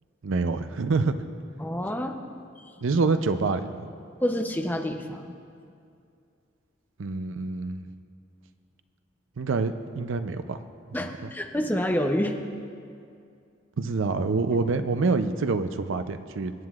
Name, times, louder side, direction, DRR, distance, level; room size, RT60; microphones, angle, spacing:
voice 1, 0.2-1.1 2.8-3.9 7.0-7.8 9.4-10.6 10.9-11.1 13.8-16.5, right 4 dB, 80° right, 10 dB, 0.5 m, -26 dB
voice 2, 1.6-2.2 4.2-5.3 10.9-12.4, equal, 10° left, 3 dB, 0.6 m, -27 dB
25.5 x 9.6 x 2.4 m, 2.4 s
head